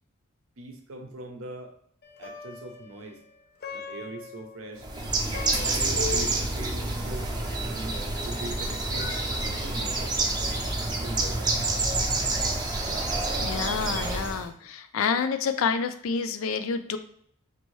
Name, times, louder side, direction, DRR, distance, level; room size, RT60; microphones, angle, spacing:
voice 1, 0.6-1.7 2.2-3.2 3.7-7.3 7.6-9.1 9.6-10.2 10.4-10.7 11.0-11.9 14.6-14.7, right 2 dB, 80° right, 4 dB, 0.6 m, -41 dB
Plucked string instrument, 2.0-11.4, left 3 dB, 50° left, 0.6 m, -43 dB
Bird, 4.8-14.5, right 2 dB, 20° right, 0.5 m, -28 dB
voice 2, 13.4-17.0, left 5 dB, 85° left, 10 dB, 0.4 m, -28 dB
4.1 x 2.7 x 3.1 m, 0.63 s
head